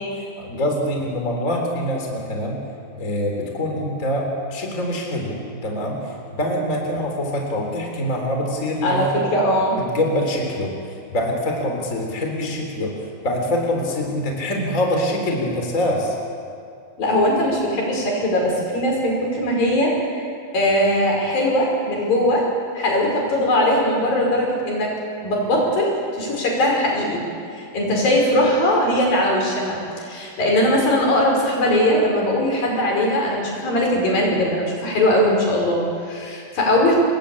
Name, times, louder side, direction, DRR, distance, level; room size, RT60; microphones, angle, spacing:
voice 1, 0.4-2.6 2.9-9.2 9.8-16.2, left 1 dB, 20° left, 1 dB, 3.9 m, -24 dB
voice 2, 9.3-9.8 17.0-20.3 20.5-22.5 22.8-24.9 25.2-27.2 27.5-37.0, left 1 dB, 70° left, -1 dB, 7.3 m, -20 dB
28.5 x 20.5 x 8.7 m, 2.3 s
omnidirectional pair, 4.2 m